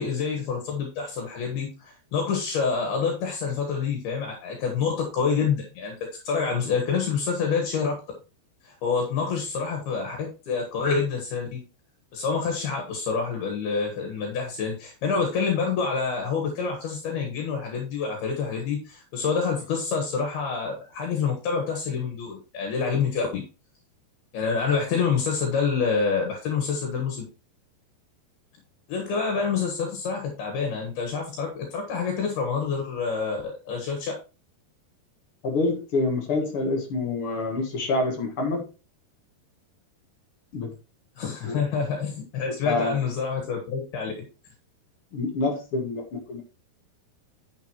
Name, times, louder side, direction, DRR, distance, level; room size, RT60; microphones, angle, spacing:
voice 1, 0.0-5.9 6.2-8.0 8.6-11.6 12.1-23.4 24.3-27.2 28.9-34.1 41.2-44.1, left 5 dB, 70° left, 3.4 m, -27 dB
voice 2, 35.4-38.6 40.5-40.7 41.4-41.6 42.6-43.0 45.1-46.4, left 3 dB, 55° left, 1.6 m, -27 dB
9.3 x 6.9 x 3.0 m
omnidirectional pair, 4.8 m